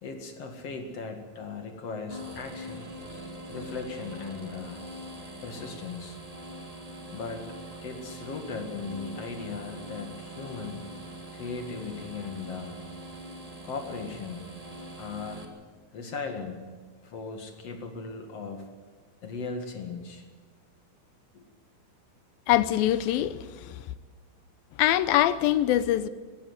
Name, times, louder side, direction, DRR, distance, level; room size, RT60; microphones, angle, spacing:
voice 1, 0.0-2.9 3.5-4.8 5.4-6.2 7.1-7.5 7.8-10.9 11.3-12.8 13.6-14.5 15.0-15.5 15.9-16.6 17.0-18.7 19.2-20.2 21.3-21.5, left 4 dB, 45° left, 2.6 m, -38 dB
sound 1, 2.1-15.4, right 1 dB, 20° right, 1.1 m, -43 dB
voice 2, 22.5-23.8 24.8-26.1, left 13 dB, 75° left, 2.5 m, -24 dB
19.5 x 15.0 x 9.5 m
omnidirectional pair, 4.4 m